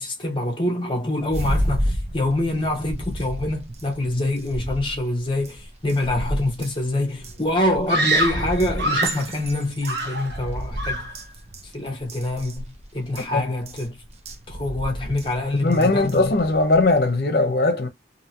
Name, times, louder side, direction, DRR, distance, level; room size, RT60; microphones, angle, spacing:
voice 1, 0.0-11.1 11.7-12.6 12.9-14.0 14.5-16.3, left 1 dB, 30° left, 1.0 m, -25 dB
sound 1, 1.2-17.1, equal, 35° right, 0.6 m, -32 dB
Screaming, 7.9-9.3 9.8-10.5 10.8-11.2, right 1 dB, 65° right, 1.0 m, -24 dB
voice 2, 15.5-17.9, left 2 dB, 55° left, 0.8 m, -19 dB
2.8 x 2.8 x 2.8 m
head